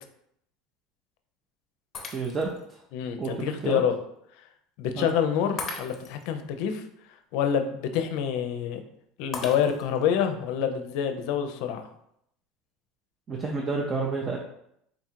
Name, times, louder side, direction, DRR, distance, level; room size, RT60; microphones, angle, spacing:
Shatter, 1.9-2.6 3.2-3.3 5.6-6.3 9.3-10.1, left 4 dB, 30° left, 0.7 m, -38 dB
voice 1, 2.1-2.5 3.2-3.8 5.0-5.1 13.3-14.4, right 4 dB, 25° right, -1 dB, 0.5 m, -29 dB
voice 2, 2.9-4.0 4.8-6.8 7.3-8.8 9.2-11.9, left 8 dB, 65° left, 7 dB, 0.5 m, -27 dB
3.8 x 2.5 x 4.4 m, 0.74 s
supercardioid pair, 140°, 0 cm